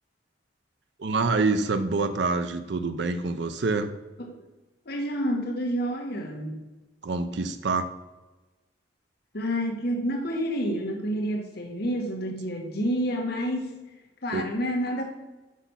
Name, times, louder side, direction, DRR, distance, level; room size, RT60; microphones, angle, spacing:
voice 1, 1.0-3.9 7.0-7.9 14.3-14.5, right 3 dB, 65° right, 9 dB, 0.5 m, -26 dB
voice 2, 4.8-6.6 9.3-13.7 14.2-15.0, equal, 60° left, 2 dB, 1.2 m, -29 dB
6.1 x 5.7 x 5.6 m, 1.1 s
head